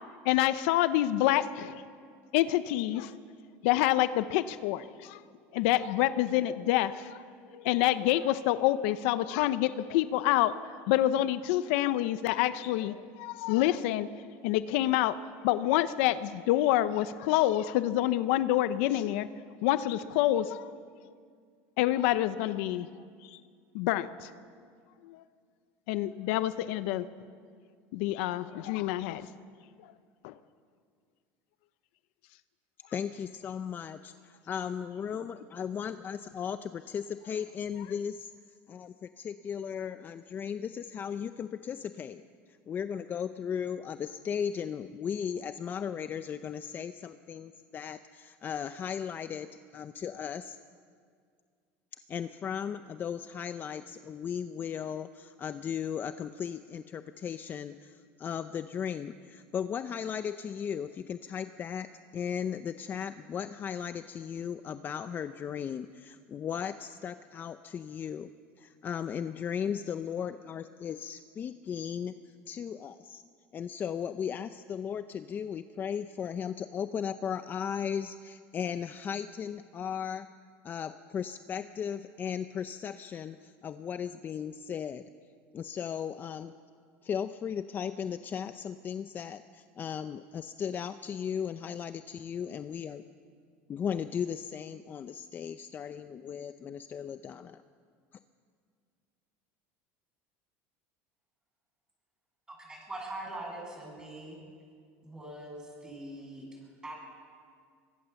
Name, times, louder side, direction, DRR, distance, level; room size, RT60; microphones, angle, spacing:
voice 1, 0.2-1.8 2.3-3.1 3.6-5.2 5.5-7.2 7.5-10.5 10.9-14.1 14.4-15.2 15.4-19.3 19.6-20.7 21.8-22.9 23.3-23.4 23.7-24.3 25.0-25.2 25.9-27.1 27.9-29.3 30.2-30.3, left 14 dB, 75° left, 13 dB, 0.8 m, -27 dB
voice 2, 32.9-38.3 38.7-42.2 42.5-49.5 49.7-50.6 52.1-68.3 68.6-72.1 72.5-73.2 73.5-80.3 80.6-85.0 85.5-86.5 87.0-93.0 93.7-97.6, left 8 dB, 30° left, 11 dB, 0.6 m, -36 dB
voice 3, 102.5-104.4 105.0-106.9, right 1 dB, 10° right, 0 dB, 7.7 m, -42 dB
23.5 x 21.5 x 7.1 m, 2.1 s
supercardioid pair, 130°, 7 cm